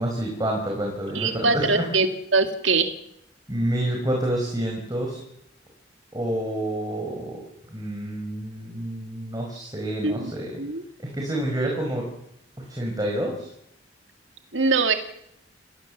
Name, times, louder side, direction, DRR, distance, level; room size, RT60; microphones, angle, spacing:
voice 1, 0.0-1.8 3.5-5.2 6.1-7.4 7.7-10.5 11.0-12.1 12.6-13.5, right 1 dB, 20° right, -1 dB, 4.9 m, -28 dB
voice 2, 1.1-2.1 2.3-2.9 10.0-10.3 10.6-10.8 14.5-14.9, right 4 dB, 80° right, 7 dB, 2.1 m, -22 dB
28.5 x 18.0 x 7.4 m, 0.77 s
head